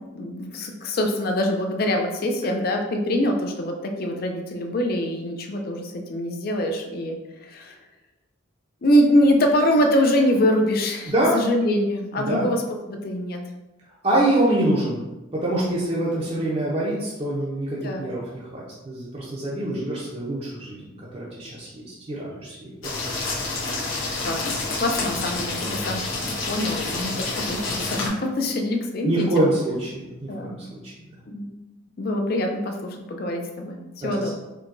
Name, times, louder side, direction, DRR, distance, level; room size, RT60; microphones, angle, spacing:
voice 1, 0.1-7.2 7.4-7.8 8.8-12.6 12.9-13.4 17.8-18.1 24.2-29.5 30.3-30.6 31.3-31.5 32.0-34.3, left 1 dB, 45° left, 3 dB, 0.4 m, -24 dB
voice 2, 12.2-12.5 14.0-15.0 15.3-23.2 29.0-30.9 34.0-34.1, right 1 dB, 30° right, -6 dB, 0.5 m, -25 dB
sound 1, 22.8-28.1, left 3 dB, 75° left, 1.0 m, -28 dB
4.5 x 2.2 x 2.5 m, 1.0 s
head